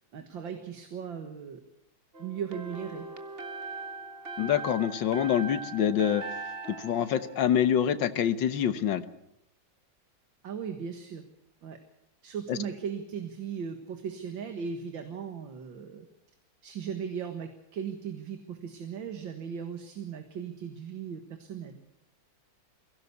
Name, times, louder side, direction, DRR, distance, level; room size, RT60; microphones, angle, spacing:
voice 1, 0.1-1.6 2.2-3.1 10.4-11.2 11.6-11.8 12.2-16.1 16.6-21.8, right 7 dB, 80° right, 6 dB, 2.4 m, -37 dB
sound 1, 2.1-8.1, right 3 dB, 35° right, 1.5 m, -41 dB
voice 2, 4.4-6.2 6.7-9.0 12.5-12.6, left 9 dB, 75° left, 12 dB, 1.8 m, -26 dB
22.5 x 17.0 x 8.3 m, 0.79 s
omnidirectional pair, 2.1 m